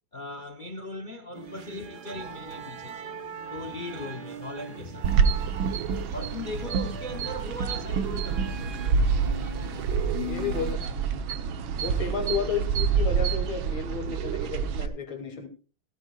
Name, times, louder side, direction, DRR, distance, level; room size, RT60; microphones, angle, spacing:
voice 1, 0.1-3.1 3.5-5.1 5.4-5.5 6.1-9.0 10.5-11.0, left 1 dB, 50° left, 0.5 m, -39 dB
sound 1, 1.3-10.7, right 2 dB, 50° right, 2.1 m, -40 dB
sound 2, 5.0-14.9, right 6 dB, 70° right, 1.8 m, -27 dB
voice 2, 10.2-10.8 11.1-11.2 11.8-15.5, left 5 dB, 70° left, 3.5 m, -32 dB
17.0 x 15.0 x 2.4 m
omnidirectional pair, 2.3 m